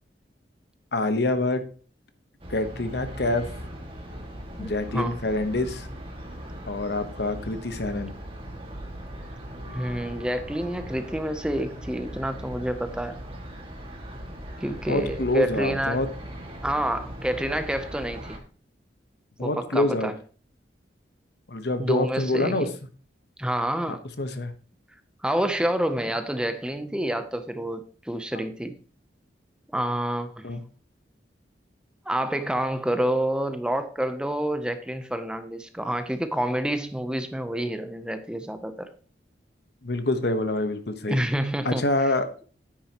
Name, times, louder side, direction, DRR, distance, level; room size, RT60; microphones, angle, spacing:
voice 1, 0.9-1.6 2.5-3.5 4.6-5.9 6.7-8.1 14.9-16.1 19.4-20.1 21.5-22.7 24.2-24.5 30.4-30.6 39.8-41.2 41.6-42.3, left 2 dB, 65° left, 1.0 m, -26 dB
sound 1, 2.4-18.4, equal, 30° right, 1.9 m, -39 dB
voice 2, 4.6-5.2 9.7-13.2 14.6-16.0 16.6-18.4 19.4-20.1 21.8-22.7 23.4-24.0 25.2-28.8 29.7-30.5 32.1-38.9 41.0-41.9, right 1 dB, 5° right, 0.6 m, -28 dB
9.7 x 9.2 x 2.9 m
head